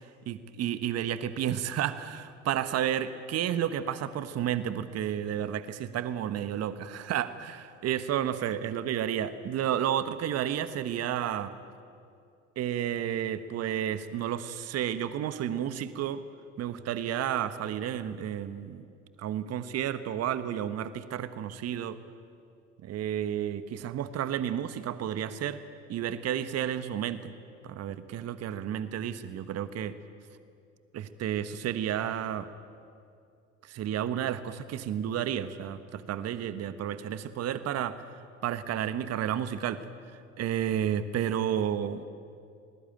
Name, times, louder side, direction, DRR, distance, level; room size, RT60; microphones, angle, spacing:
voice 1, 0.3-11.5 12.6-16.2 16.6-18.8 19.2-22.0 22.8-25.6 25.9-27.3 27.6-29.9 30.9-32.5 33.6-38.0 38.4-39.9 40.4-42.0, right 10 dB, 45° right, 12 dB, 1.3 m, -31 dB
28.5 x 19.5 x 9.0 m, 2.5 s
hypercardioid pair, 65°, 36 cm